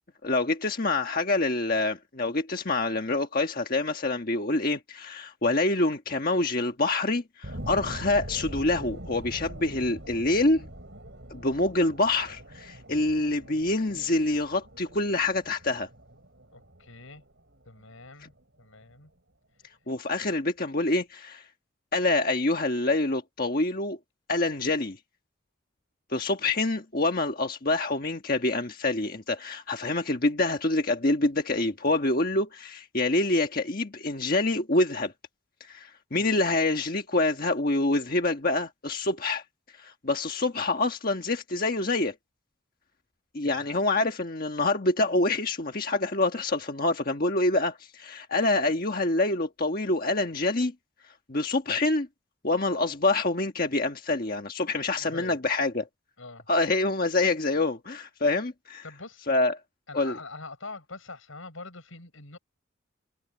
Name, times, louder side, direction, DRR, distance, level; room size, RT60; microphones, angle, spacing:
voice 1, 0.2-10.6 11.3-15.9 19.9-21.4 21.9-24.0 24.3-25.0 26.1-35.1 35.6-39.4 39.8-42.1 43.3-50.7 51.3-52.1 52.4-55.8 56.5-58.8 59.3-59.5 59.9-60.2, left 2 dB, 45° left, 1.4 m, -26 dB
sound 1, 7.4-18.4 18.9-19.0, right 1 dB, 60° right, 5.1 m, -43 dB
voice 2, 16.5-17.2 17.6-18.3 18.6-19.1 36.1-36.2 43.6-43.7 55.0-55.4 56.2-56.5 58.8-59.3 59.9-62.4, left 3 dB, 85° left, 6.6 m, -44 dB
head